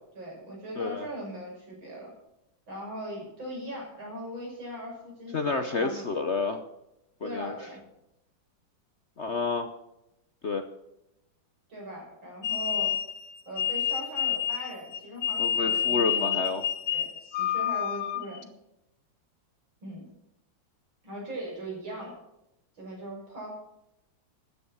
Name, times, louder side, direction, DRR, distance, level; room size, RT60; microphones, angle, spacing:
voice 1, 0.1-2.1 2.7-6.1 7.2-7.8 11.7-12.9 13.5-16.4 16.8-18.5 19.8-20.1 21.0-22.2 22.8-23.6, right 1 dB, 80° right, -2 dB, 7.1 m, -40 dB
voice 2, 0.8-1.1 5.3-6.6 7.2-7.5 9.2-9.7 10.4-10.6 15.4-16.6, left 4 dB, 50° left, 8 dB, 0.9 m, -29 dB
sound 1, 12.4-18.4, left 10 dB, 85° left, 1.7 m, -28 dB
13.0 x 10.0 x 6.5 m, 0.87 s
omnidirectional pair, 2.1 m